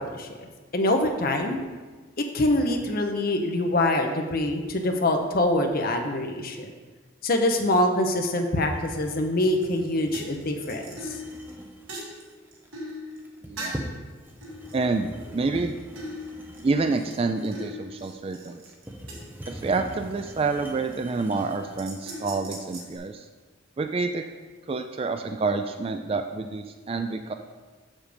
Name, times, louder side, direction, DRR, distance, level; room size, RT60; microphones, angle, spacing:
voice 1, 0.0-1.6 2.2-6.7 7.2-11.1, left 1 dB, 50° left, 4 dB, 0.9 m, -25 dB
sound 1, 8.7-22.0, equal, 10° right, 0.8 m, -43 dB
sound 2, 9.6-9.9 10.1-14.0 14.4-15.7 16.0-20.0 20.6-20.9 21.3-23.0, equal, 85° right, 2.0 m, -40 dB
voice 2, 13.5-13.8 14.7-15.8 16.6-18.6 19.5-23.3 23.8-24.3 24.7-27.3, right 3 dB, 30° right, 7 dB, 0.3 m, -28 dB
7.3 x 6.5 x 5.1 m, 1.4 s
head